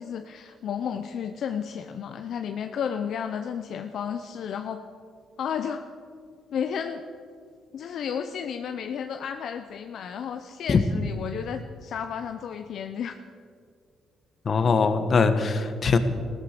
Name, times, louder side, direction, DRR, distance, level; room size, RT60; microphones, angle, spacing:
voice 1, 0.0-4.8 5.4-5.8 6.5-7.0 7.7-13.2, left 7 dB, 70° left, 7 dB, 0.7 m, -32 dB
voice 2, 14.4-16.0, left 5 dB, 45° left, 9 dB, 1.4 m, -21 dB
16.5 x 12.5 x 6.7 m, 2.2 s
cardioid pair, 90°, 0 cm